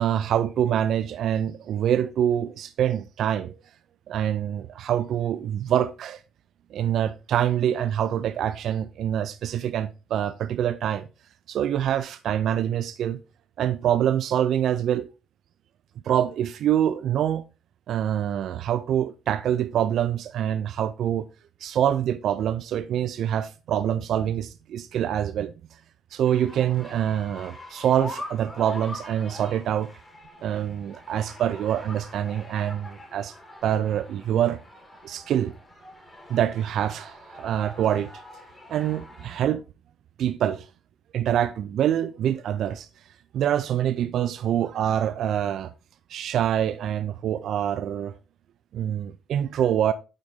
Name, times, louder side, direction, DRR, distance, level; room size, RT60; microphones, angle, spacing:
voice 1, 0.0-3.6 4.1-6.2 6.7-11.1 11.5-13.2 13.6-15.1 16.0-17.4 17.9-21.3 21.6-25.5 26.1-29.9 30.4-33.3 33.6-34.6 35.0-35.5 36.3-38.1 38.7-39.6 40.2-40.7 41.1-42.9 43.3-45.7 46.1-48.1 48.7-49.9, right 10 dB, 70° right, 0.4 m, -25 dB
sound 1, 26.3-39.4, left 1 dB, 15° left, 2.6 m, -44 dB
8.9 x 3.9 x 3.6 m
cardioid pair, 115°, 0 cm